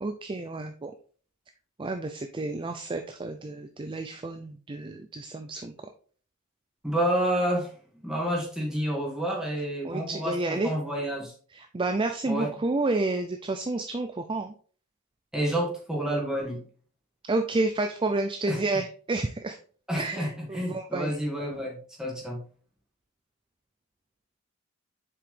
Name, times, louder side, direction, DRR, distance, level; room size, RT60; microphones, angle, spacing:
voice 1, 0.0-0.9 1.8-5.7 9.8-10.7 11.5-14.5 17.3-19.6 20.0-21.1, right 2 dB, 20° right, 6 dB, 0.4 m, -30 dB
voice 2, 6.8-7.7 8.0-11.3 12.3-12.5 15.3-16.7 18.5-18.6 19.9-22.4, equal, 5° right, -3 dB, 2.1 m, -29 dB
7.2 x 4.8 x 3.4 m, 0.43 s
head